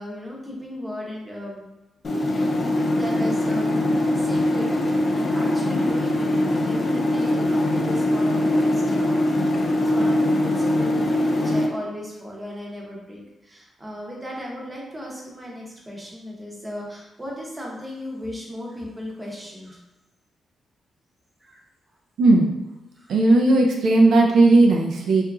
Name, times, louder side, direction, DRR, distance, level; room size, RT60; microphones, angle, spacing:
voice 1, 0.0-1.6 2.4-19.8 21.4-21.6 22.9-23.1, left 1 dB, 15° right, -3 dB, 0.7 m, -36 dB
sound 1, 2.0-11.7, left 1 dB, 45° left, 0.4 m, -22 dB
voice 2, 22.2-22.5 23.1-25.2, right 2 dB, 80° right, 0 dB, 0.3 m, -16 dB
2.8 x 2.4 x 2.3 m, 0.99 s
cardioid pair, 90°, 0 cm